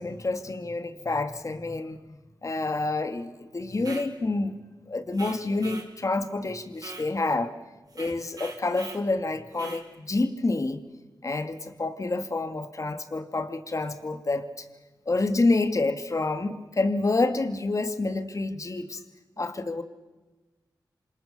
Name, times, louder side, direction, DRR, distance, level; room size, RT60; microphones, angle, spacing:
voice 1, 0.0-4.6 4.9-7.5 8.0-10.8 11.2-14.7 15.1-19.0 19.4-19.8, left 2 dB, 45° left, 8 dB, 2.3 m, -28 dB
sound 1, 3.7-4.1 5.1-5.9 6.8-7.1 7.9-9.0 9.5-9.9, right 3 dB, 55° right, 5.7 m, -42 dB
27.5 x 27.5 x 6.8 m, 1.2 s
cardioid pair, 60°, 8 cm